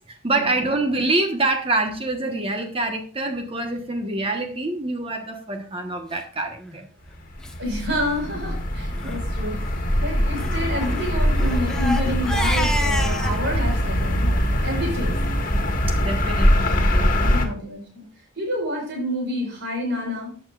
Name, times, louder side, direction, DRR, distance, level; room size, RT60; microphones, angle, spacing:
voice 1, 0.1-6.9 15.9-17.4, right 2 dB, 30° right, 4 dB, 1.2 m, -26 dB
Crying sobbing, 6.5-6.8 7.4-7.5 7.8-7.9 8.3-8.5 8.9-9.2 10.3-13.4, left 1 dB, 5° left, 1.1 m, -29 dB
sound 1, 7.1-17.5, equal, 45° left, 1.8 m, -22 dB
voice 2, 7.6-15.2 16.8-18.1 18.3-20.3, equal, 60° right, 0 dB, 4.6 m, -29 dB
14.5 x 8.9 x 2.4 m, 0.41 s
head